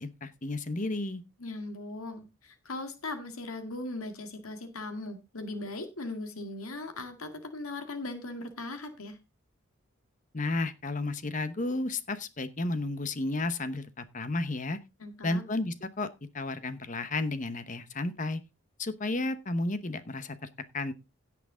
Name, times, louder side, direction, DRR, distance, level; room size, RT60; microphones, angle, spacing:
voice 1, 0.0-1.2 10.3-14.8 15.2-18.4 18.8-20.4 20.7-20.9, left 2 dB, 35° left, 1.0 m, -32 dB
voice 2, 1.4-9.2 15.0-15.4, left 2 dB, 90° left, 2.0 m, -39 dB
17.0 x 6.0 x 3.7 m
head